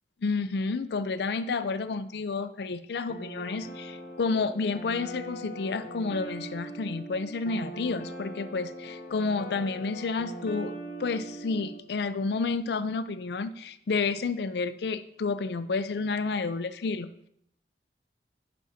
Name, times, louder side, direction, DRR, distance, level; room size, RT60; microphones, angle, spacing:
voice 1, 0.2-10.7 11.0-17.3, left 4 dB, 70° left, 13 dB, 0.4 m, -30 dB
sound 1, 3.1-11.8, right 1 dB, 50° left, 0.9 m, -41 dB
9.2 x 6.2 x 2.8 m, 0.70 s
head